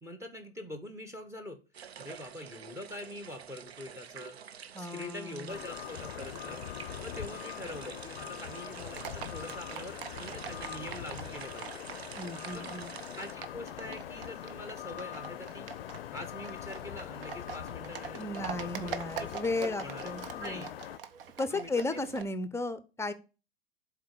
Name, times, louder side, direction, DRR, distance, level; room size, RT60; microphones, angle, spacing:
voice 1, 0.0-1.6 2.0-4.4 4.8-6.6 7.0-11.8 12.5-12.8 13.1-15.7 16.1-19.3 19.6-20.1 20.4-20.7 21.5-22.0, left 1 dB, 10° right, 8 dB, 1.1 m, -44 dB
sound 1, 1.7-13.3, right 8 dB, 85° right, 0.6 m, -48 dB
voice 2, 4.7-5.5 12.1-12.9 18.2-20.6 21.4-23.1, left 2 dB, 10° left, 12 dB, 0.7 m, -35 dB
sound 2, 5.5-21.0, left 12 dB, 70° left, 0.5 m, -42 dB
Livestock farm animals working animals, 8.9-22.2, right 7 dB, 65° right, 1.1 m, -45 dB
7.6 x 4.6 x 6.8 m, 0.32 s
figure-of-eight pair, 95°, 31 cm